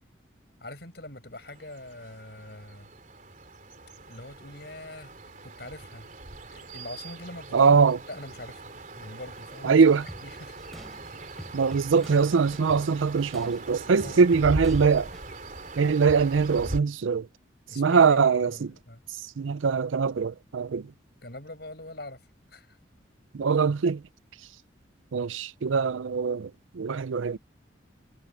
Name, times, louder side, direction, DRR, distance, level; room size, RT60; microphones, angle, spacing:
voice 1, 0.6-2.9 4.1-5.2 5.4-6.1 6.5-7.8 8.1-9.8 10.2-10.6 13.8-14.3 17.7-19.0 21.2-22.2 22.5-22.8, left 2 dB, 55° left, 7.9 m, -43 dB
sound 1, 1.3-16.8, right 1 dB, 40° right, 3.7 m, -40 dB
voice 2, 7.5-8.0 9.6-10.0 11.5-15.1 15.8-17.3 17.7-18.7 19.2-20.9 23.3-24.0 25.1-27.4, right 5 dB, 85° right, 0.5 m, -22 dB
sound 2, 10.1-15.3, equal, ahead, 3.8 m, -46 dB
head